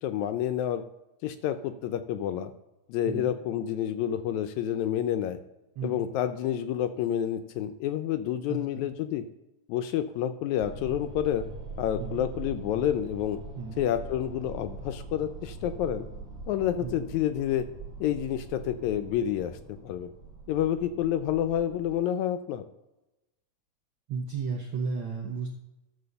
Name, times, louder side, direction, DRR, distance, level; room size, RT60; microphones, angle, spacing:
voice 1, 0.0-0.8 1.2-2.5 2.9-5.4 5.8-9.2 9.7-11.4 11.8-13.4 13.8-16.1 16.5-17.7 18.0-20.1 20.5-22.7, left 10 dB, 80° left, 10 dB, 1.8 m, -29 dB
voice 2, 8.5-8.8 12.0-12.2 13.5-13.8 16.8-17.0 24.1-25.5, right 5 dB, 65° right, 0 dB, 1.2 m, -34 dB
sound 1, 10.6-22.0, right 3 dB, 20° right, 2.6 m, -42 dB
12.0 x 4.1 x 6.7 m, 0.98 s
omnidirectional pair, 3.6 m